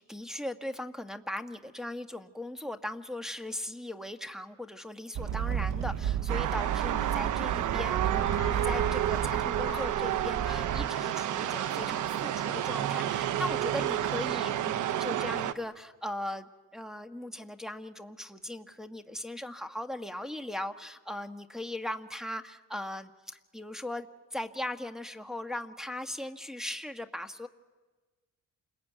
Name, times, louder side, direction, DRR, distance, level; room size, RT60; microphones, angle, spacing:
voice 1, 0.0-27.5, left 1 dB, ahead, 5 dB, 1.6 m, -39 dB
sound 1, 5.2-10.9, right 9 dB, 60° right, 1.0 m, -33 dB
sound 2, 6.3-15.5, right 11 dB, 80° right, 1.2 m, -30 dB
Human voice, 8.0-9.2 9.6-11.9 12.3-12.9 13.5-14.3, left 8 dB, 65° left, 2.9 m, -48 dB
28.5 x 21.5 x 9.3 m, 1.3 s
cardioid pair, 90°, 30 cm